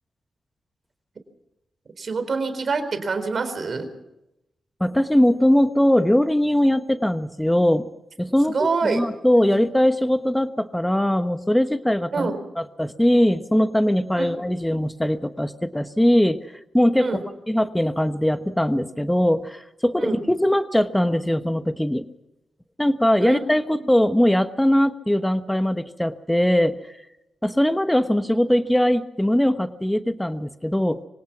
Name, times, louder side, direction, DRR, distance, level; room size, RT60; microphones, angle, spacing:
voice 1, 2.0-3.9 8.4-9.0 9.5-9.6 12.1-12.4 14.2-14.5 17.0-17.2 20.0-20.2 23.2-23.4, right 4 dB, 60° right, 9 dB, 4.1 m, -26 dB
voice 2, 4.8-7.9 8.2-12.3 12.6-17.2 17.5-22.1 22.8-26.8 27.4-31.0, equal, 10° left, 10 dB, 1.2 m, -21 dB
25.0 x 18.0 x 6.0 m, 0.90 s
cardioid pair, 50°, 0 cm